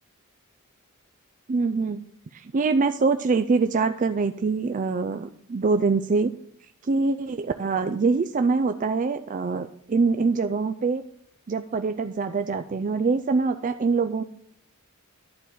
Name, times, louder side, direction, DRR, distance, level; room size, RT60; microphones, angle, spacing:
voice 1, 1.5-2.0 2.3-6.3 6.8-11.0 11.5-14.2, right 4 dB, 35° right, 8 dB, 0.4 m, -24 dB
11.5 x 4.3 x 7.8 m, 0.64 s
head